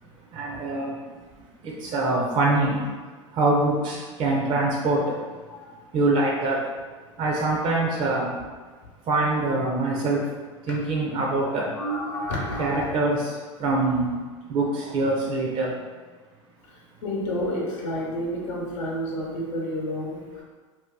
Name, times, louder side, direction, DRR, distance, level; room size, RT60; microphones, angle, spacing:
voice 1, 0.3-1.0 1.6-2.9 3.3-5.4 5.9-6.7 7.2-8.3 9.1-10.3 10.6-11.8 12.6-14.1 14.5-15.8, right 2 dB, 40° right, -3 dB, 0.6 m, -24 dB
voice 2, 11.7-12.9 16.6-16.7 17.0-20.4, equal, 70° left, -4 dB, 0.9 m, -30 dB
2.8 x 2.2 x 3.6 m, 1.4 s
hypercardioid pair, 95°, 16 cm